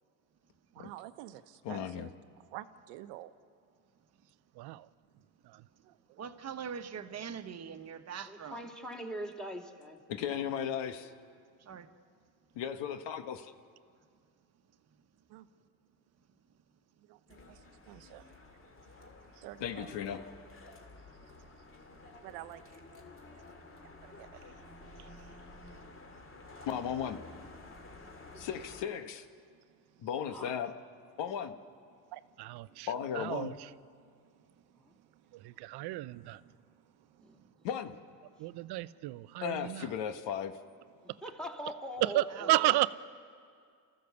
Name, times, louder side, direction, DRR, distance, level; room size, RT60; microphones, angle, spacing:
voice 1, 0.7-2.1 2.5-3.3 5.1-5.2 5.8-6.2 15.3-15.5 17.1-17.2 17.5-17.6 17.9-18.6 19.3-19.9 21.9-22.8 24.0-24.5 25.0-25.4 33.4-33.5 36.1-36.6 37.1-37.2 39.3-39.4, right 15 dB, 80° right, 1.1 m, -49 dB
voice 2, 1.6-2.1 10.1-11.1 12.5-13.5 19.6-20.2 26.6-27.2 28.3-29.3 30.0-30.7 31.2-31.6 32.9-33.6 37.6-38.0 39.4-40.5, left 8 dB, 60° left, 1.4 m, -36 dB
voice 3, 4.6-4.9 5.5-5.6 32.1-32.9 33.1-33.5 35.4-36.4 38.4-39.9 42.0-42.9, right 17 dB, 55° right, 0.7 m, -32 dB
voice 4, 6.2-8.7 11.6-11.9 37.4-37.5 42.3-42.8, right 7 dB, 30° right, 1.3 m, -43 dB
voice 5, 8.3-10.0 28.3-28.4 30.3-30.6 32.7-32.8 34.7-34.9 37.2-37.4 41.2-42.9, equal, ahead, 2.6 m, -42 dB
sound 1, 17.3-28.9, left 2 dB, 25° left, 2.5 m, -52 dB
29.0 x 14.5 x 7.0 m
supercardioid pair, 95°, 48 cm